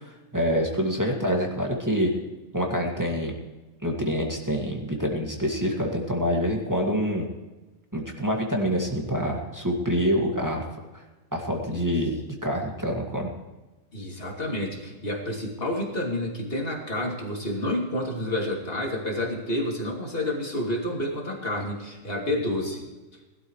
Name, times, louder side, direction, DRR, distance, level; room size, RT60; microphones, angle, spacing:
voice 1, 0.0-2.1 2.5-3.3 3.8-7.2 7.9-10.6 10.9-11.0 11.3-12.2 12.4-13.3, equal, 15° right, -1 dB, 2.1 m, -26 dB
voice 2, 13.9-22.8, left 1 dB, 40° left, -1 dB, 3.0 m, -29 dB
20.5 x 12.5 x 3.2 m, 1.1 s
omnidirectional pair, 1.5 m